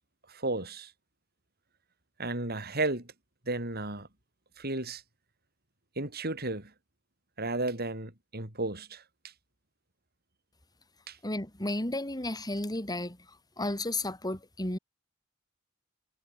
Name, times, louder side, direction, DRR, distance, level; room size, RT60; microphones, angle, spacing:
voice 1, 0.3-0.9 2.2-3.1 3.5-4.1 4.6-5.0 6.0-6.7 7.4-9.0 11.1-11.2, right 2 dB, 50° right, 7.5 m, -33 dB
voice 2, 11.2-13.2 13.6-14.8, left 1 dB, 20° left, 3.6 m, -33 dB
head